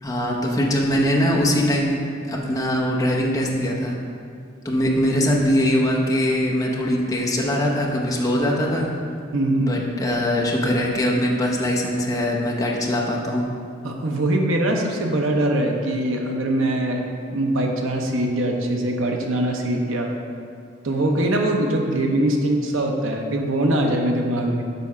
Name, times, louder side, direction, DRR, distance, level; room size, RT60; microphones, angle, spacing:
voice 1, 0.0-2.0 2.3-3.9 4.6-8.9 9.6-13.5, equal, 15° left, -2 dB, 0.8 m, -22 dB
voice 2, 9.3-9.9 13.8-17.0 17.3-20.1 20.8-24.6, right 1 dB, 80° right, 2 dB, 0.7 m, -22 dB
6.9 x 4.1 x 4.8 m, 2.3 s
head